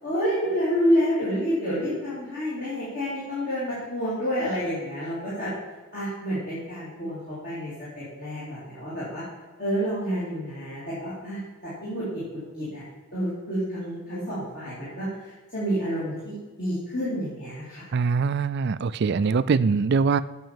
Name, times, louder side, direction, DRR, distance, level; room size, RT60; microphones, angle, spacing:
voice 1, 0.0-5.5 5.9-9.2 9.6-12.8 13.1-17.9, equal, 45° left, -11 dB, 3.7 m, -29 dB
voice 2, 17.9-20.2, right 5 dB, 50° right, 15 dB, 0.4 m, -23 dB
9.1 x 6.2 x 7.1 m, 1.3 s
head